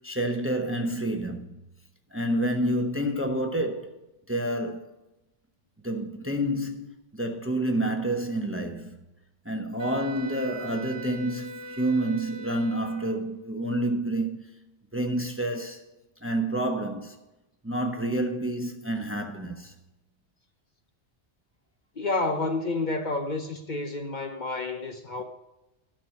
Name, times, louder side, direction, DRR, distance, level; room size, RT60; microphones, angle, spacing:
voice 1, 0.0-1.6 2.1-4.9 5.8-9.0 9.4-14.5 14.9-15.8 16.2-17.2 17.6-19.7, right 1 dB, 15° right, 0.9 m, -29 dB
Wind instrument woodwind instrument, 9.8-13.2, equal, 15° left, 1.8 m, -41 dB
voice 2, 22.0-25.2, left 2 dB, 45° left, 0.9 m, -29 dB
12.0 x 5.9 x 5.7 m
omnidirectional pair, 1.2 m